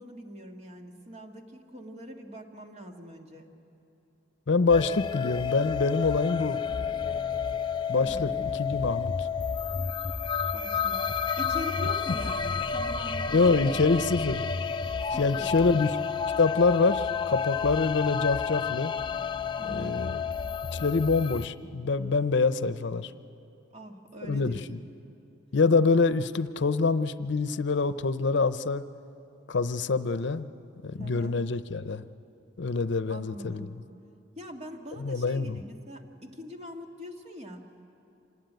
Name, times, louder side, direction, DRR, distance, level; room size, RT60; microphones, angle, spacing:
voice 1, 0.0-3.5 7.9-8.2 10.5-11.1 11.4-13.7 15.1-15.5 19.6-20.0 23.7-24.6 31.0-31.4 33.1-33.7 34.4-37.6, equal, 35° right, 3 dB, 1.9 m, -42 dB
voice 2, 4.5-6.6 7.9-9.3 13.3-14.5 15.1-16.0 16.4-18.9 19.6-20.2 20.7-23.1 24.2-24.8 25.5-28.8 29.5-30.5 30.8-32.0 32.6-33.7 35.0-35.6, left 4 dB, 65° left, 13 dB, 0.6 m, -25 dB
sound 1, 4.7-21.5, left 6 dB, 25° left, 0.5 m, -30 dB
26.0 x 19.5 x 9.3 m, 2.9 s
head